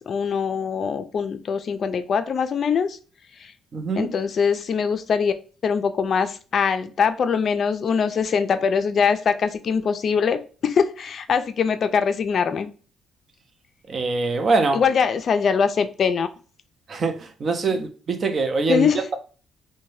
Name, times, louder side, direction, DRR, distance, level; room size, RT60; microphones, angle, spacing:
voice 1, 0.1-3.0 3.4-3.5 4.0-5.3 5.6-12.7 14.7-16.3 18.7-19.0, left 6 dB, 55° left, 0.3 m, -22 dB
voice 2, 3.7-4.1 13.9-14.8 16.9-19.1, right 3 dB, 50° right, 0.5 m, -23 dB
2.6 x 2.1 x 3.1 m
cardioid pair, 90°, 0 cm